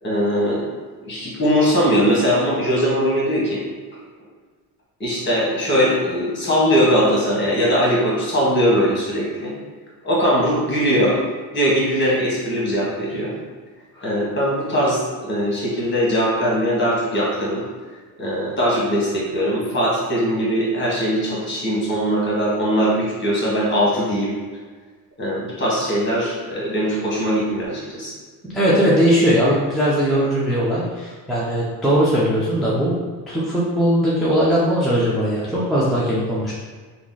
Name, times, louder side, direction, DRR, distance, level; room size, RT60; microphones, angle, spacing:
voice 1, 0.0-0.6 1.0-3.6 5.0-9.5 10.0-11.2 11.5-13.3 13.9-17.6 18.2-24.3 25.2-28.1, equal, 25° left, -5 dB, 1.4 m, -20 dB
voice 2, 28.4-33.0 33.3-36.5, equal, ahead, -8 dB, 0.5 m, -19 dB
3.0 x 2.4 x 3.8 m, 1.4 s
cardioid pair, 115°, 43 cm